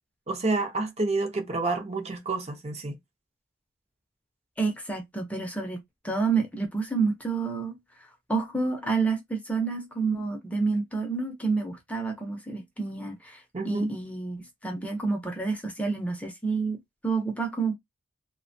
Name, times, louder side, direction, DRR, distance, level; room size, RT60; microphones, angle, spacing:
voice 1, 0.3-3.0 13.5-13.9, right 3 dB, 35° right, 0.6 m, -29 dB
voice 2, 4.6-5.8 6.0-7.8 8.3-17.7, right 4 dB, 5° left, 0.6 m, -29 dB
3.0 x 2.2 x 2.6 m
head